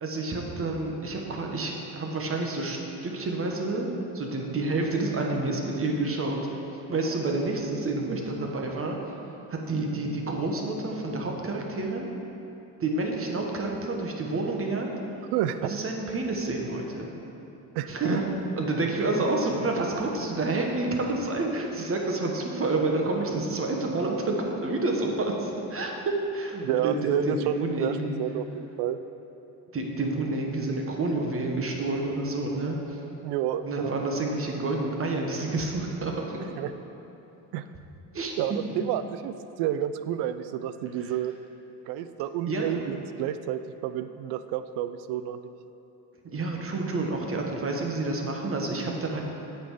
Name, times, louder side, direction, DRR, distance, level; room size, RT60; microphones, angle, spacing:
voice 1, 0.0-8.9 9.5-12.1 12.8-14.9 15.6-17.1 17.9-18.2 18.5-28.1 29.7-33.0 33.6-36.3 38.1-38.3 41.0-41.1 42.5-42.7 46.2-49.2, right 2 dB, 30° right, 1 dB, 1.3 m, -29 dB
voice 2, 15.3-15.8 17.7-18.2 26.6-29.0 33.2-33.9 36.6-36.7 37.5-37.6 38.4-41.4 41.9-45.5, right 11 dB, 70° right, 12 dB, 0.5 m, -30 dB
8.6 x 5.6 x 4.9 m, 2.9 s
supercardioid pair, 80°, 42 cm